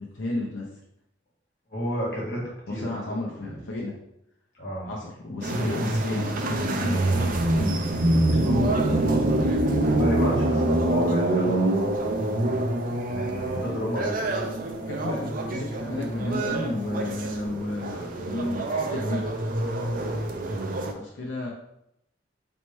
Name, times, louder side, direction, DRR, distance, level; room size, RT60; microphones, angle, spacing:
voice 1, 0.1-0.7 2.7-3.9 4.9-7.8 8.3-9.5 14.9-19.3 20.9-21.5, left 2 dB, 85° left, -3 dB, 0.7 m, -32 dB
voice 2, 1.7-3.2 3.4-3.6 4.5-4.9 8.4-8.8 9.9-12.6 13.1-14.2, equal, 55° left, -4 dB, 1.5 m, -32 dB
sound 1, 5.4-20.9, right 1 dB, 50° right, 0.5 m, -25 dB
3.3 x 3.1 x 4.2 m, 0.79 s
head